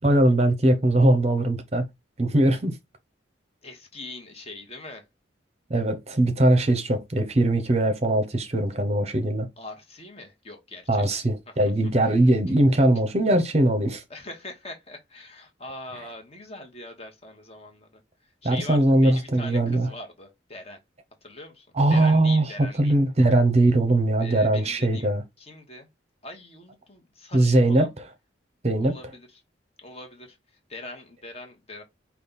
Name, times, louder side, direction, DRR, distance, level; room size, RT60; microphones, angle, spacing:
voice 1, 0.0-1.8 2.2-2.8 5.7-9.5 10.9-14.0 18.4-19.9 21.7-22.4 22.8-25.2 27.3-27.9 28.6-28.9, right 1 dB, 35° right, 0.7 m, -21 dB
voice 2, 3.6-5.0 9.6-11.0 12.0-12.1 14.1-18.0 18.4-20.8 21.2-22.9 24.2-25.1 25.4-25.9 26.2-27.9 28.8-29.4 29.8-30.4 30.7-31.8, left 2 dB, 30° left, 1.1 m, -42 dB
5.2 x 2.3 x 3.9 m
head